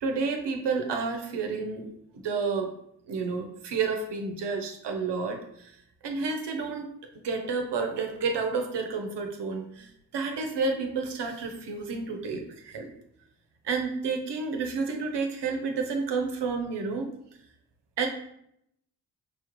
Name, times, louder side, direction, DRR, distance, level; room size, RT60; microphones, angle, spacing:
voice 1, 0.0-1.9 2.1-2.7 3.1-5.8 6.0-6.9 7.2-12.9 13.6-17.1 18.0-18.1, right 4 dB, 70° right, 4 dB, 0.8 m, -30 dB
5.3 x 2.5 x 3.0 m, 0.74 s
supercardioid pair, 50°, 43 cm